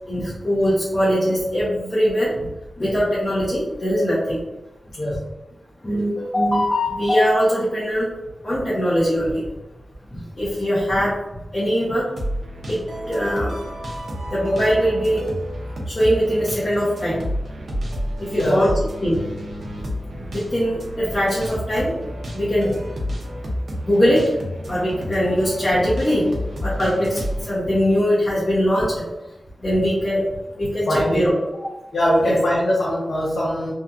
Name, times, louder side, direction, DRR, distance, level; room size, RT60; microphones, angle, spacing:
voice 1, 0.1-2.5 2.8-4.4 5.8-8.1 8.4-9.4 10.4-11.2 11.5-12.0 12.7-13.6 14.3-15.2 15.9-17.2 18.2-18.7 19.0-19.2 19.6-19.7 20.1-22.0 22.3-22.8 23.8-24.2 24.7-26.3 26.6-29.1 29.6-30.2 30.6-31.3 32.2-32.4, equal, 30° left, -9 dB, 0.9 m, -21 dB
voice 2, 4.9-5.2 18.3-18.7 30.9-31.3 31.9-33.7, equal, 70° left, -7 dB, 0.7 m, -21 dB
sound 1, 12.2-27.5, equal, 80° right, 0.6 m, -30 dB
2.8 x 2.5 x 2.3 m, 1.0 s
wide cardioid pair, 95°, 0 cm